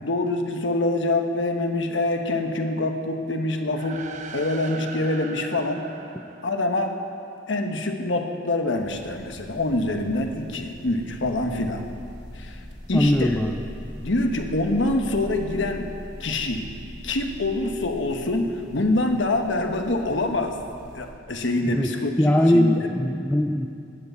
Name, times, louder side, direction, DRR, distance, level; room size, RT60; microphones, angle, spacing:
voice 1, 0.0-4.0 4.3-5.9 6.4-6.9 7.5-11.8 12.4-12.6 12.9-13.4 14.0-15.9 16.2-16.6 17.0-20.6 20.9-22.9, left 2 dB, 85° left, 5 dB, 1.1 m, -25 dB
sound 1, 3.6-7.3, right 5 dB, 40° right, 0.8 m, -41 dB
sound 2, 8.7-21.1, equal, 25° right, 3.2 m, -41 dB
voice 2, 12.9-13.6 21.7-23.7, left 1 dB, 10° left, 3 dB, 0.4 m, -21 dB
11.5 x 8.2 x 8.2 m, 2.5 s
head